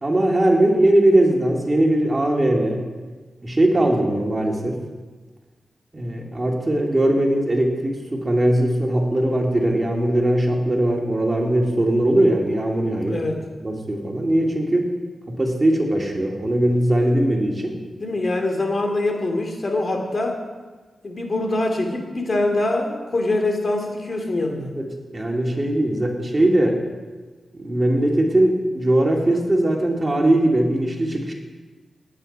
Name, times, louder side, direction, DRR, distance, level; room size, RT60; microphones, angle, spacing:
voice 1, 0.0-2.8 3.4-4.8 5.9-13.2 13.6-14.9 15.3-17.7 24.8-24.9 25.1-26.7 27.5-31.3, right 1 dB, 30° right, 0 dB, 2.7 m, -20 dB
voice 2, 13.1-13.4 18.0-20.4 21.0-24.7, left 2 dB, 45° left, 3 dB, 2.6 m, -24 dB
18.0 x 9.0 x 5.6 m, 1.3 s
cardioid pair, 70°, 0 cm